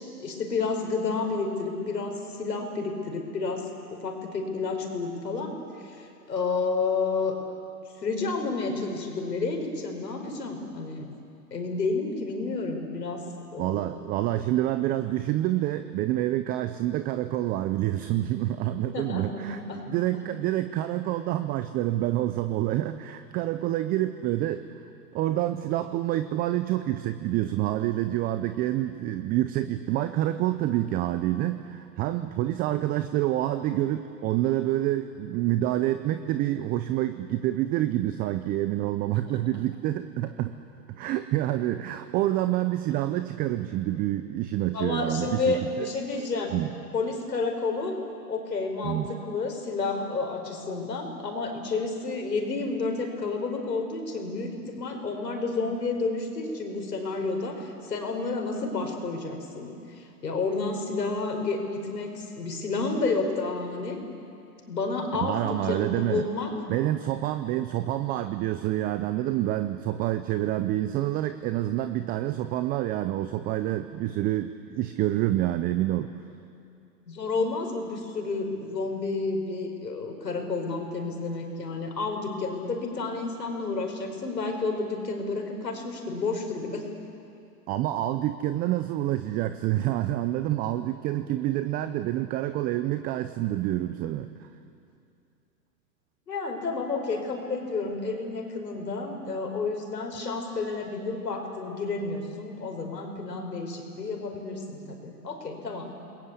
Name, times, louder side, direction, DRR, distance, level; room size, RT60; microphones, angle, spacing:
voice 1, 0.0-7.3 8.0-11.1 11.5-13.2 13.5-14.1 18.9-19.9 20.1-20.3 39.3-39.4 44.7-46.5 46.9-48.0 48.3-64.0 64.7-66.5 77.1-86.9 96.3-106.0, left 3 dB, 85° left, 3 dB, 5.3 m, -30 dB
voice 2, 13.6-24.7 25.1-40.6 40.9-45.9 46.5-46.7 48.8-49.1 65.2-66.3 66.7-76.1 87.7-94.5, right 14 dB, 20° right, 10 dB, 0.5 m, -27 dB
28.5 x 21.0 x 8.4 m, 2.5 s
hypercardioid pair, 120°, 48 cm